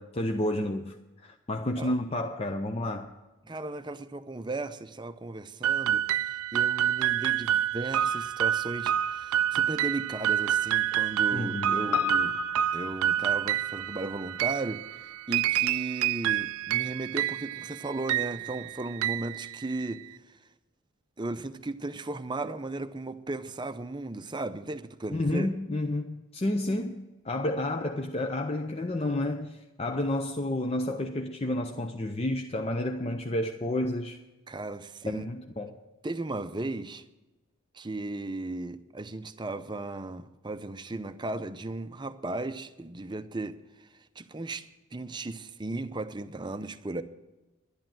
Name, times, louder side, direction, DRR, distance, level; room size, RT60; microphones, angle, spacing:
voice 1, 0.0-3.1 11.3-11.8 25.1-34.2 35.1-35.8, left 1 dB, 25° left, 0.6 m, -30 dB
voice 2, 3.5-12.4 12.7-20.4 21.2-25.5 34.5-35.3 36.0-37.0 37.7-44.7 44.9-47.0, right 2 dB, 20° right, 0.6 m, -36 dB
sound 1, 5.6-20.1, right 11 dB, 75° right, 0.3 m, -28 dB
Piano, 11.9-16.4 16.7-16.8, left 9 dB, 85° left, 0.7 m, -36 dB
11.5 x 11.5 x 7.5 m
head